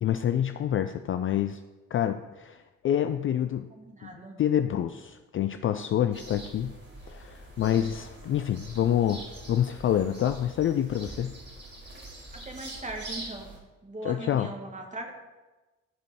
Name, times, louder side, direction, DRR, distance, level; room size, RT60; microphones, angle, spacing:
voice 1, 0.0-1.6 1.9-3.7 4.0-6.8 7.1-9.2 9.5-11.4 14.0-14.5, left 10 dB, 35° left, 9 dB, 0.4 m, -27 dB
voice 2, 3.8-4.4 12.3-13.6 13.8-15.1, right 2 dB, 20° right, 2 dB, 2.0 m, -39 dB
sound 1, 6.1-13.6, right 2 dB, 40° right, 3.9 m, -44 dB
15.5 x 5.2 x 4.1 m, 1.1 s
figure-of-eight pair, 45°, 39 cm